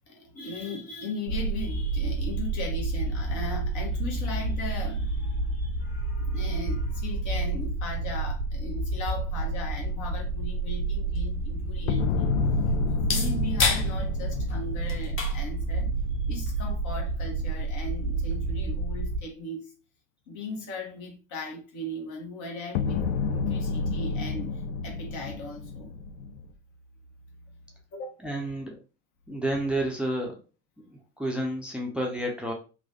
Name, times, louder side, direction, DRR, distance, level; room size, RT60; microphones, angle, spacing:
voice 1, 0.1-12.3 12.9-15.9 16.2-19.7 20.3-25.9 27.9-28.2 31.9-32.0, left 2 dB, 55° left, 1.1 m, -38 dB
sound 1, 1.3-19.2, right 3 dB, 75° right, 0.5 m, -29 dB
sound 2, 10.6-18.6, left 4 dB, 35° left, 0.8 m, -35 dB
sound 3, 11.9-16.2 22.7-26.5, left 5 dB, 70° left, 0.5 m, -30 dB
voice 2, 28.2-28.8 29.3-30.4 31.2-32.5, right 1 dB, 5° right, 0.6 m, -30 dB
3.0 x 2.2 x 2.8 m
figure-of-eight pair, 60°, 36 cm